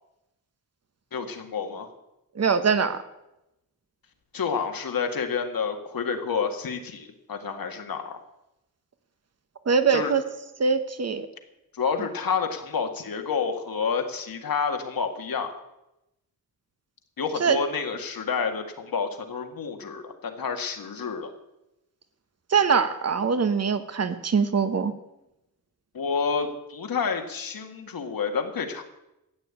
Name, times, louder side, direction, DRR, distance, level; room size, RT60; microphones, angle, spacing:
voice 1, 1.1-1.9 4.3-8.2 9.9-10.1 11.7-15.5 17.2-21.3 25.9-28.8, left 5 dB, 75° left, 5 dB, 1.9 m, -29 dB
voice 2, 2.4-3.0 9.7-10.2 10.6-11.3 17.4-17.6 22.5-24.9, right 5 dB, 45° right, 11 dB, 1.2 m, -23 dB
13.5 x 9.4 x 8.3 m, 0.89 s
wide cardioid pair, 160°, 35 cm